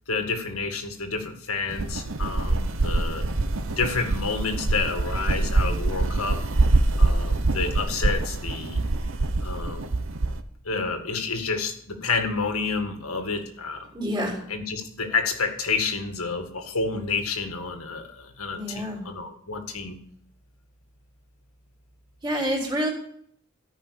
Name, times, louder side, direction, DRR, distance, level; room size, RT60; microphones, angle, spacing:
voice 1, 0.1-3.2 3.8-6.5 7.0-8.8 9.4-9.9 10.7-13.9 14.5-20.0, left 4 dB, 85° left, 5 dB, 2.0 m, -29 dB
sound 1, 1.7-10.4, right 2 dB, 65° right, 1.0 m, -24 dB
voice 2, 13.9-14.4 18.5-19.1 22.2-22.9, equal, 20° right, -2 dB, 3.3 m, -27 dB
14.0 x 5.8 x 8.5 m, 0.66 s
head